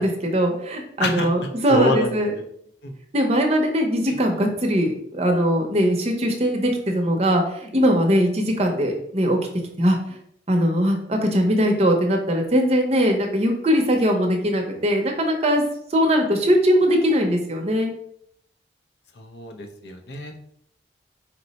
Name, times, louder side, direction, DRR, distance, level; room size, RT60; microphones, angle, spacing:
voice 1, 0.0-2.3 3.1-9.4 9.8-10.0 10.5-15.6 15.9-17.9, equal, 35° right, 2 dB, 0.6 m, -20 dB
voice 2, 1.0-2.4 2.8-2.9 4.1-4.2 19.2-20.4, left 2 dB, 75° left, 4 dB, 0.6 m, -27 dB
4.3 x 2.1 x 4.0 m, 0.70 s
head